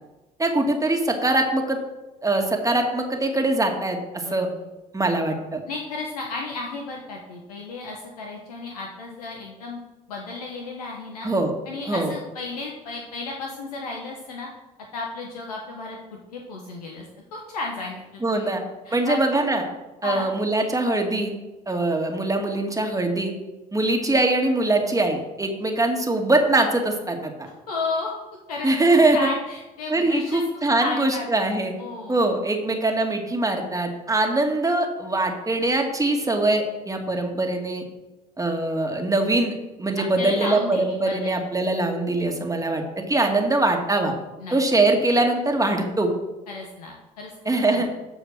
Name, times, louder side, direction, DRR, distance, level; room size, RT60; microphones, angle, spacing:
voice 1, 0.4-1.8 2.2-4.5 4.9-5.6 11.2-11.5 11.9-12.1 18.2-18.6 18.9-19.6 20.0-21.3 21.7-23.3 23.7-27.3 28.6-29.2 29.9-31.7 32.1-37.8 38.4-44.1 44.5-46.1 47.5-47.9, right 2 dB, 20° right, 3 dB, 2.1 m, -22 dB
voice 2, 4.2-4.6 5.7-9.8 10.1-11.3 11.7-14.5 14.9-16.0 16.3-17.0 17.3-18.5 18.8-19.4 20.0-20.3 27.4-28.1 28.5-30.4 30.8-31.3 31.8-32.2 40.2-41.5 44.4-44.5 46.5-47.3 47.6-47.9, left 3 dB, 85° left, 0 dB, 1.2 m, -33 dB
13.5 x 5.0 x 6.2 m, 1.1 s
hypercardioid pair, 55°, 19 cm